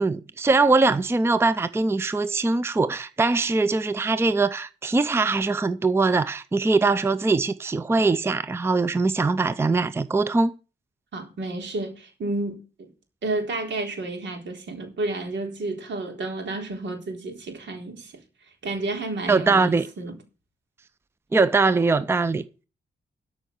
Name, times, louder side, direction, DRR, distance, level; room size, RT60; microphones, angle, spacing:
voice 1, 0.0-10.5 19.3-19.9 21.3-22.4, right 3 dB, 15° right, 0.5 m, -22 dB
voice 2, 11.1-12.9 13.2-18.2 18.6-20.2, right 2 dB, 80° right, 3.8 m, -31 dB
13.0 x 5.5 x 7.8 m
wide cardioid pair, 160°, 18 cm